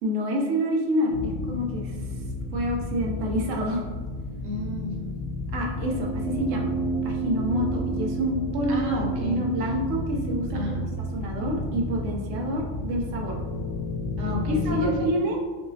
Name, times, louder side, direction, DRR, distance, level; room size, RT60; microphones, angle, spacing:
voice 1, 0.0-2.0 2.5-3.9 5.5-6.7 7.0-8.9 9.2-10.8 11.1-13.4 14.5-15.4, equal, 90° right, 0 dB, 1.0 m, -27 dB
sound 1, 1.1-14.9, equal, 80° left, 1.1 m, -31 dB
voice 2, 4.4-5.1 8.7-9.4 10.5-10.9 14.2-15.1, equal, 65° right, 0 dB, 0.9 m, -32 dB
5.7 x 2.0 x 2.6 m, 1.4 s
omnidirectional pair, 1.3 m